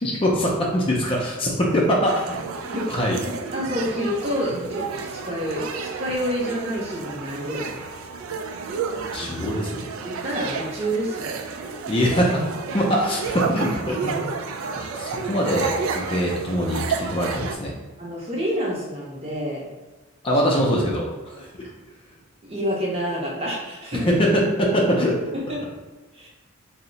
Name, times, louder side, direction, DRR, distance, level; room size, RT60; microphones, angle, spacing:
voice 1, 0.0-2.4 2.9-3.2 8.9-9.9 11.9-12.4 12.7-14.3 14.8-17.7 20.2-21.5 24.1-25.3, equal, 25° left, -2 dB, 0.4 m, -23 dB
sound 1, 2.0-17.6, right 5 dB, 90° right, 0.3 m, -31 dB
voice 2, 3.2-7.8 9.2-9.5 10.0-11.6 18.0-19.7 21.3-21.4 22.4-24.1 25.3-25.6 26.1-26.3, equal, 30° right, -3 dB, 0.7 m, -28 dB
2.7 x 2.1 x 3.8 m, 1.2 s
head